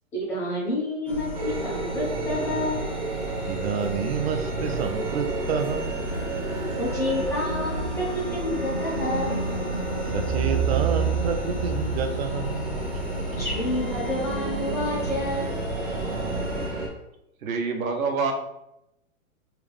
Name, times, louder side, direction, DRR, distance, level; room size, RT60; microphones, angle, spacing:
voice 1, 0.1-2.8 6.8-9.5 13.4-15.5, left 1 dB, 5° left, -7 dB, 0.5 m, -29 dB
sound 1, 1.1-16.7, right 1 dB, 55° left, 1.5 m, -34 dB
sound 2, 1.3-16.9, right 3 dB, 30° right, 1.1 m, -30 dB
voice 2, 3.5-6.0 6.5-6.7 10.1-12.8, right 6 dB, 50° right, 6 dB, 0.5 m, -29 dB
voice 3, 17.4-18.3, right 4 dB, 75° right, 3 dB, 0.9 m, -26 dB
3.4 x 3.4 x 3.4 m, 0.86 s
hypercardioid pair, 160°, 41 cm